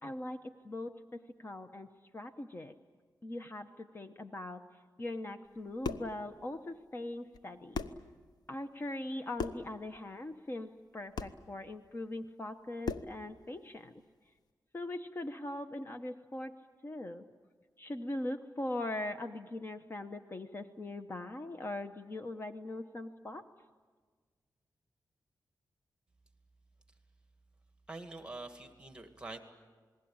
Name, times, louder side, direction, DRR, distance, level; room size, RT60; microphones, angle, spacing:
voice 1, 0.0-2.7 3.2-4.6 5.0-7.9 8.5-14.0 14.7-16.5 16.8-17.2 17.8-23.4, left 1 dB, 30° left, 7 dB, 1.0 m, -41 dB
sound 1, 5.6-6.2 7.3-7.4 7.7-8.1 9.3-9.7 11.1-11.4 12.8-13.2, left 5 dB, 70° left, 1.0 m, -37 dB
voice 2, 27.9-29.4, right 2 dB, 15° right, 6 dB, 2.2 m, -45 dB
28.0 x 20.5 x 8.8 m, 1.5 s
wide cardioid pair, 110°, 7 cm